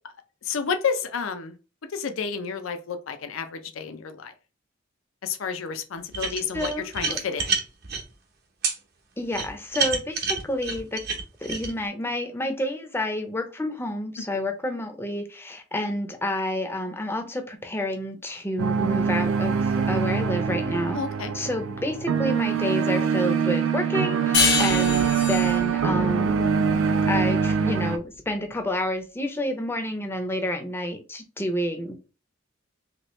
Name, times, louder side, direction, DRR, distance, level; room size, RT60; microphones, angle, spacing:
voice 1, 0.4-1.6 1.9-4.3 5.2-7.5 20.9-21.3, left 6 dB, 80° left, 8 dB, 0.5 m, -30 dB
sound 1, 6.1-8.0 8.6-8.8 9.3-11.7, right 5 dB, 55° right, 0.8 m, -27 dB
voice 2, 6.3-7.2 9.2-11.0 11.4-21.0 21.3-26.5 27.1-32.0, left 1 dB, 10° left, 5 dB, 0.6 m, -29 dB
sound 2, 18.6-28.0, right 6 dB, 75° right, 0.4 m, -24 dB
sound 3, 24.3-27.5, left 5 dB, 65° left, 1.0 m, -26 dB
3.0 x 2.9 x 3.1 m, 0.33 s
head